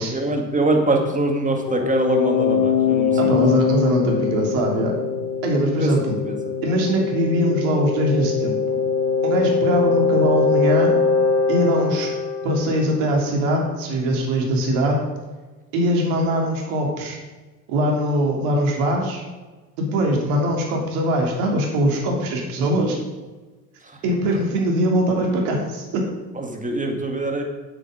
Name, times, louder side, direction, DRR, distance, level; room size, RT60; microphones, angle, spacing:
voice 1, 0.1-3.4 5.7-6.4 6.7-6.8 23.8-24.0 24.3-24.5 26.3-27.4, right 2 dB, 15° right, 3 dB, 2.1 m, -24 dB
sound 1, 1.7-13.3, left 5 dB, 80° left, 1.4 m, -22 dB
voice 2, 3.2-4.9 5.4-6.1 6.6-8.8 9.2-10.9 11.5-12.1 12.4-15.0 15.7-17.2 17.7-19.2 19.8-23.0 24.0-26.0, right 1 dB, 65° right, 0 dB, 3.2 m, -21 dB
8.7 x 8.0 x 5.1 m, 1.2 s
hypercardioid pair, 75°, 50 cm